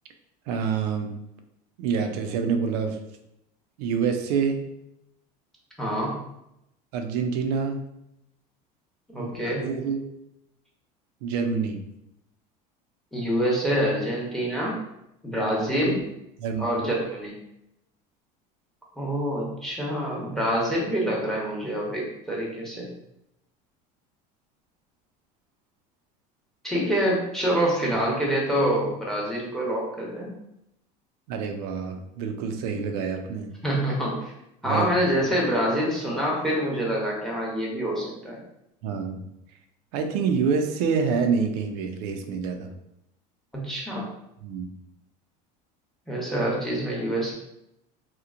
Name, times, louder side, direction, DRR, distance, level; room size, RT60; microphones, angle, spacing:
voice 1, 0.5-1.1 1.8-3.0 3.8-4.7 6.9-7.9 9.1-10.0 11.2-11.8 15.8-16.0 16.4-16.7 31.3-33.5 34.6-34.9 38.8-39.2 39.9-42.7 44.4-44.7, right 6 dB, 80° right, 5 dB, 0.5 m, -27 dB
voice 2, 5.8-6.2 9.1-9.7 13.1-14.7 15.2-16.0 16.6-17.4 19.0-22.9 26.6-30.3 33.6-34.3 34.6-38.4 43.5-44.1 46.1-47.3, equal, ahead, -3 dB, 0.8 m, -26 dB
2.9 x 2.1 x 2.4 m, 0.82 s
supercardioid pair, 110°, 20 cm